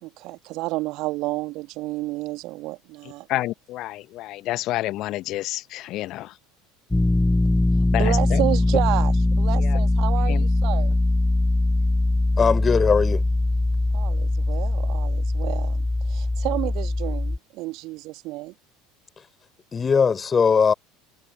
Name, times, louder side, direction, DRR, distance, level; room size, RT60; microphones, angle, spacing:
voice 1, 0.0-3.3 7.9-10.9 13.9-18.5, right 20 dB, 50° right, 2.6 m, -30 dB
voice 2, 3.3-6.3 7.9-8.4 9.6-9.8 10.3-10.4, left 16 dB, 45° left, 1.4 m, -29 dB
sound 1, 6.9-17.4, left 2 dB, 10° left, 0.9 m, -21 dB
voice 3, 12.4-13.2 19.2-19.3 19.7-20.7, left 6 dB, 25° left, 4.1 m, -19 dB
figure-of-eight pair, 70°, 0 cm